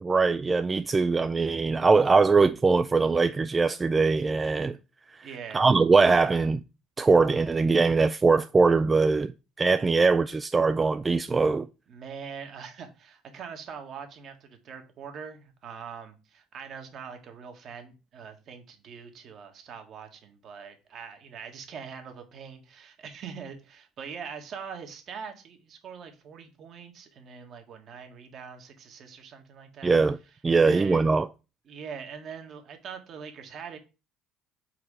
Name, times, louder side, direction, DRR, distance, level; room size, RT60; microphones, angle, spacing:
voice 1, 0.0-4.8 5.1-5.3 5.5-6.6 7.0-9.3 9.6-11.7 29.8-30.2 30.4-31.3, right 4 dB, 25° right, 0.3 m, -22 dB
voice 2, 5.2-5.7 11.9-29.9 30.5-31.1 31.7-33.8, right 6 dB, 55° right, 1.6 m, -43 dB
4.7 x 4.3 x 4.9 m
supercardioid pair, 90°, 0 cm